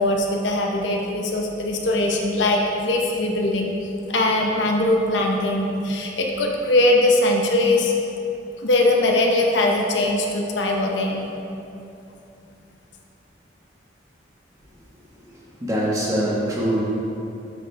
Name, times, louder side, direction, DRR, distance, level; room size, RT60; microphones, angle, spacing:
voice 1, 0.0-3.7 4.1-7.9 8.6-11.3, left 2 dB, 80° left, 0 dB, 0.9 m, -21 dB
voice 2, 15.2-16.8, equal, 15° right, -6 dB, 1.2 m, -24 dB
8.2 x 6.2 x 3.5 m, 2.8 s
head